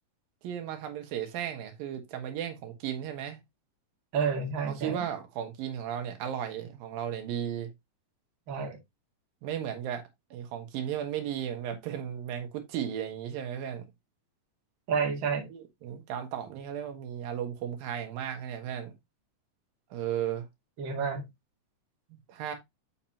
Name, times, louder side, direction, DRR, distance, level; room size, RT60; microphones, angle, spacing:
voice 1, 0.4-3.4 4.7-7.7 9.4-10.0 10.3-13.9 15.5-18.9 19.9-20.5 22.1-22.5, right 9 dB, 85° right, 3.1 m, -35 dB
voice 2, 4.1-5.0 8.5-8.8 14.9-15.5 20.8-21.2, right 5 dB, 40° right, 2.1 m, -30 dB
7.3 x 5.7 x 2.8 m
omnidirectional pair, 4.0 m